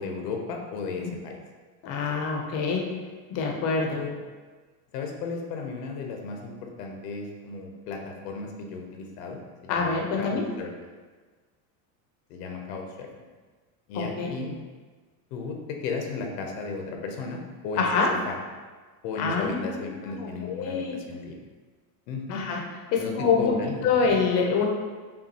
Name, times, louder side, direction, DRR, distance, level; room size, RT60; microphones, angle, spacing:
voice 1, 0.0-1.4 3.9-4.2 4.9-10.7 12.3-13.1 13.9-14.6 15.3-17.9 18.3-18.4 19.0-21.4 22.1-22.4 23.0-24.1, left 4 dB, 90° left, 2 dB, 0.8 m, -35 dB
voice 2, 1.8-2.9 3.3-4.0 9.7-10.5 13.9-14.3 17.8-18.1 19.2-19.6 20.1-21.0 22.3-22.6 22.9-23.5 23.8-24.6, left 5 dB, 35° left, 0 dB, 0.5 m, -25 dB
5.6 x 2.3 x 2.7 m, 1.4 s
cardioid pair, 160°, 46 cm